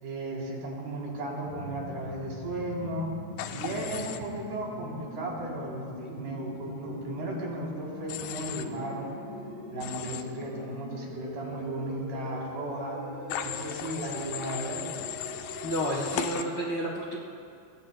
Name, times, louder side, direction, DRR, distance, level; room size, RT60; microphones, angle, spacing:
voice 1, 0.0-3.1 3.5-9.1 9.7-13.0 13.4-14.8, right 1 dB, 75° right, -3 dB, 5.3 m, -35 dB
sound 1, 1.4-16.3, equal, 30° left, 5.3 m, -42 dB
Human voice / Train, 3.4-4.2 8.1-8.6 9.8-10.2 13.3-16.4, left 10 dB, 80° left, 2.3 m, -37 dB
voice 2, 15.6-17.2, equal, 50° left, -4 dB, 1.6 m, -30 dB
24.0 x 23.0 x 2.2 m, 2.4 s
omnidirectional pair, 4.6 m